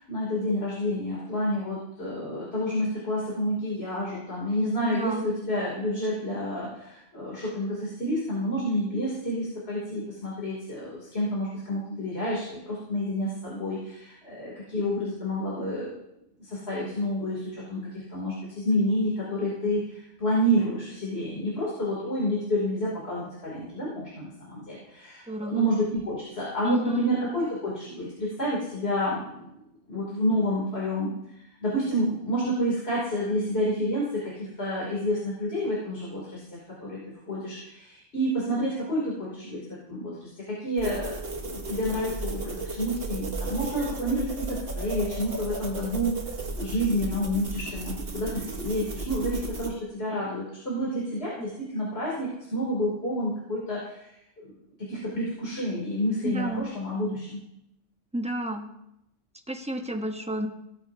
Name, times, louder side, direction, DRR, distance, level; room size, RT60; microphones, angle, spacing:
voice 1, 0.0-16.0 16.4-29.5 29.9-37.0 37.3-46.2 46.6-54.1 54.4-54.5 54.9-57.4, equal, 55° left, -6 dB, 3.2 m, -29 dB
voice 2, 4.8-5.3 25.3-25.7 26.6-27.1 51.4-51.5 56.2-56.7 58.1-58.7 59.5-60.5, right 1 dB, 5° right, 4 dB, 0.9 m, -30 dB
sound 1, 40.8-49.7, right 3 dB, 50° right, 1.5 m, -35 dB
17.5 x 8.9 x 2.7 m, 0.83 s
omnidirectional pair, 1.3 m